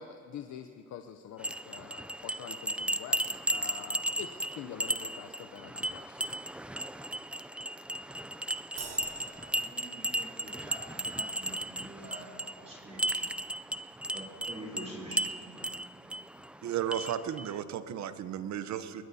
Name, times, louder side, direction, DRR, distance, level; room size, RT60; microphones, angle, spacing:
voice 1, 0.0-6.3, left 8 dB, 65° left, 7 dB, 0.7 m, -46 dB
sound 1, 1.4-17.5, right 1 dB, 5° right, 0.3 m, -35 dB
Crash cymbal, 8.8-10.4, right 5 dB, 80° right, 4.4 m, -47 dB
voice 2, 8.9-12.3 12.6-13.2 14.1-15.2, right 1 dB, 20° right, -4 dB, 3.6 m, -47 dB
voice 3, 16.6-19.1, right 10 dB, 65° right, 11 dB, 0.9 m, -34 dB
21.0 x 19.5 x 2.8 m, 2.6 s
cardioid pair, 90°, 30 cm